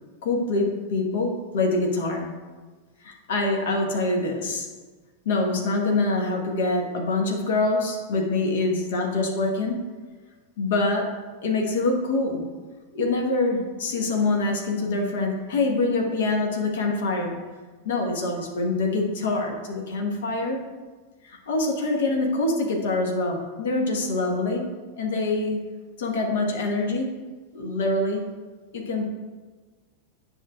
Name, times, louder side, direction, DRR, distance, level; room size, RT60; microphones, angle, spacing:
voice 1, 0.2-2.3 3.0-4.7 5.2-9.9 10.6-12.5 12.9-17.4 17.8-20.7 21.2-25.7 26.0-27.1 27.5-28.3 28.7-29.1, left 2 dB, 60° left, 1 dB, 1.2 m, -25 dB
9.9 x 5.6 x 2.3 m, 1.3 s
figure-of-eight pair, 90°, 0 cm